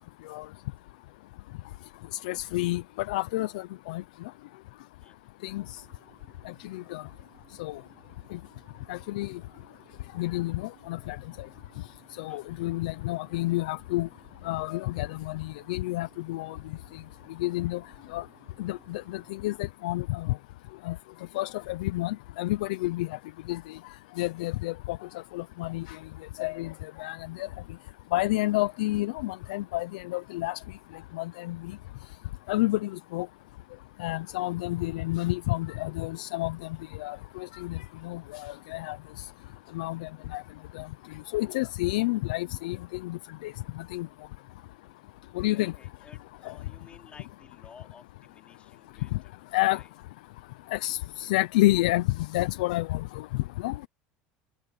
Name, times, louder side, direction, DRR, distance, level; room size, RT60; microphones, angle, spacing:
voice 1, 2.2-4.0 5.4-5.6 6.7-7.0 7.6-7.8 8.3-8.4 8.9-9.3 10.2-11.2 12.2-14.1 14.4-16.6 17.4-17.8 18.1-18.2 18.6-20.3 20.9-21.0 21.3-23.1 23.5-23.6 24.2-25.0 25.3-26.0 26.4-26.7 27.0-27.5 28.1-30.6 31.1-31.6 32.5-33.3 34.0-36.6 37.0-37.8 38.0-39.0 39.7-40.4 40.8-40.9 41.3-42.8 43.0-43.5 43.9-44.1 45.4-45.7 49.1-49.2 49.5-49.8 50.7-52.0 52.3-53.0 53.6-53.9, left 18 dB, 85° left, 0.6 m, -29 dB
voice 2, 5.0-5.4 12.3-12.8 45.4-49.9, left 6 dB, 30° left, 3.0 m, -55 dB
sound 1, 5.6-19.4, right 15 dB, 55° right, 4.0 m, -60 dB
open air
supercardioid pair, 110°, 4 cm